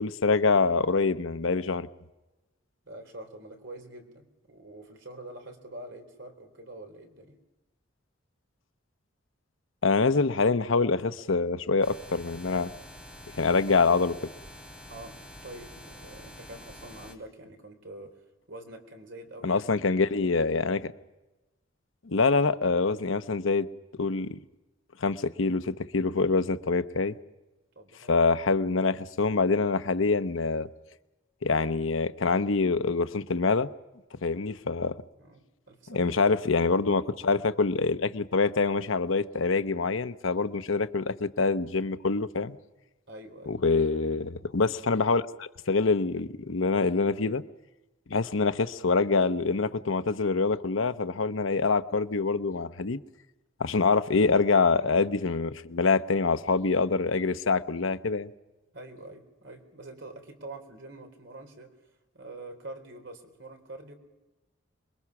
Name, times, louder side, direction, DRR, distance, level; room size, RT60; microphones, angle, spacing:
voice 1, 0.0-1.9 9.8-12.7 13.3-14.2 19.4-20.9 22.0-23.7 24.0-24.4 25.0-27.1 28.1-30.7 31.4-33.7 34.2-35.0 35.9-42.6 43.5-47.4 48.1-53.0 53.6-58.3, left 4 dB, 75° left, 0.8 m, -25 dB
voice 2, 2.9-7.4 14.9-18.2 18.5-19.9 27.8-28.2 35.2-36.1 43.1-43.6 58.7-61.7 62.1-63.9, right 2 dB, 65° right, 3.9 m, -45 dB
sound 1, 11.8-17.2, equal, 5° right, 2.8 m, -47 dB
27.5 x 22.0 x 6.0 m
head